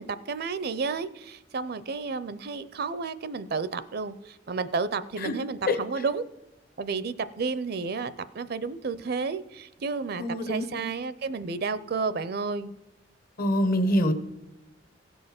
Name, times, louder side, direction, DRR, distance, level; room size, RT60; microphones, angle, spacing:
voice 1, 0.0-6.2 6.8-12.7, right 4 dB, 55° right, 15 dB, 0.5 m, -31 dB
voice 2, 10.2-10.8 13.4-14.1, left 1 dB, 50° left, 9 dB, 1.0 m, -25 dB
16.0 x 5.4 x 5.9 m, 0.99 s
head